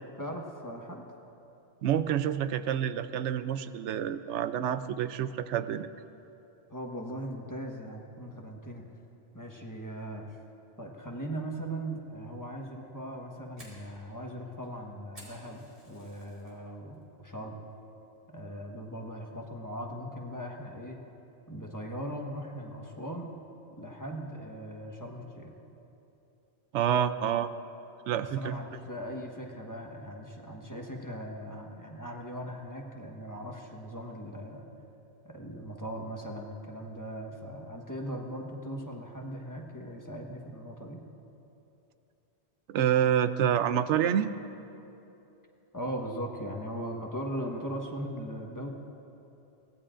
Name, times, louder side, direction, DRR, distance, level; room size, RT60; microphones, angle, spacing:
voice 1, 0.2-1.0 6.7-8.8 9.3-10.3 10.8-17.6 18.3-21.0 21.5-23.4 23.8-25.5 28.1-34.7 35.2-41.0 45.7-48.7, equal, 15° left, 0 dB, 1.2 m, -39 dB
voice 2, 1.8-5.9 26.7-27.5 28.1-28.6 42.7-44.3, right 9 dB, 90° right, 12 dB, 0.9 m, -28 dB
Fire, 13.0-16.5 16.9-17.3 17.7-17.8 18.4-18.7, right 1 dB, 55° right, 3.9 m, -54 dB
23.5 x 18.0 x 2.5 m, 2.9 s
omnidirectional pair, 1.2 m